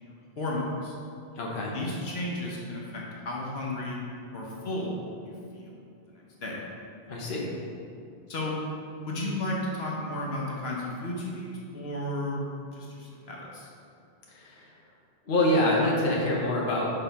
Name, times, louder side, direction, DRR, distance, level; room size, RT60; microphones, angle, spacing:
voice 1, 0.0-1.0 1.7-4.0 4.3-5.0 5.2-5.8 6.1-6.6 8.3-8.6 9.0-12.5 12.7-13.7, left 1 dB, 80° left, -3 dB, 1.3 m, -33 dB
voice 2, 1.4-1.7 7.1-7.5 14.3-14.7 15.3-16.9, left 1 dB, 55° left, -3 dB, 1.1 m, -26 dB
5.4 x 4.0 x 5.6 m, 2.5 s
omnidirectional pair, 1.0 m